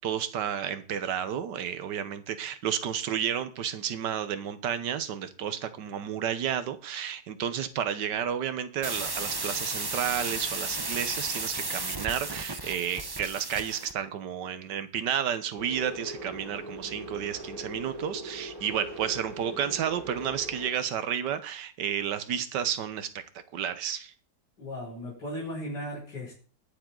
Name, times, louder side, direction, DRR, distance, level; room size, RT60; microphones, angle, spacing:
voice 1, 0.0-23.1 23.5-24.1, right 9 dB, 80° right, 1.6 m, -31 dB
sound 1, 8.8-14.0, right 3 dB, 20° right, 0.6 m, -34 dB
sound 2, 15.6-20.7, right 1 dB, 55° right, 3.8 m, -41 dB
voice 2, 24.6-26.3, equal, 80° left, 6.2 m, -36 dB
21.0 x 7.4 x 3.9 m
omnidirectional pair, 1.8 m